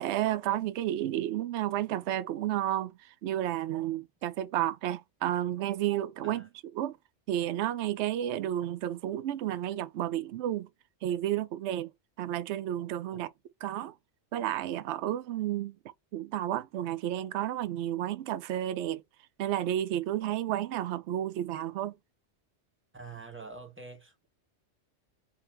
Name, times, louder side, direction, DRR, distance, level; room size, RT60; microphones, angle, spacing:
voice 1, 0.0-2.9 3.2-6.5 6.7-7.0 7.3-10.7 11.0-11.9 12.2-13.3 13.6-13.9 14.3-15.7 16.1-19.0 19.4-21.9, right 12 dB, 75° right, 0.8 m, -31 dB
voice 2, 22.9-24.3, right 4 dB, 10° right, 1.1 m, -46 dB
3.5 x 2.8 x 4.3 m
omnidirectional pair, 1.2 m